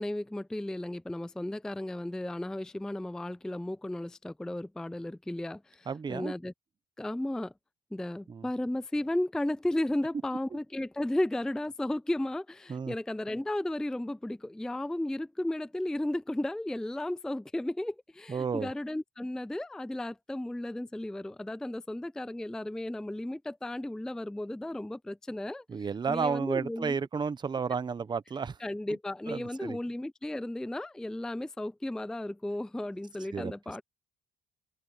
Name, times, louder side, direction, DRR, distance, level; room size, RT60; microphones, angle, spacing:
voice 1, 0.0-6.5 7.0-7.5 7.9-27.0 28.6-33.8, left 1 dB, 5° left, 0.4 m, -34 dB
voice 2, 5.9-6.3 8.3-8.5 12.7-12.9 18.3-18.7 25.7-28.6 29.3-29.8 33.3-33.5, right 5 dB, 25° right, 0.9 m, -32 dB
cardioid pair, 110°, 17 cm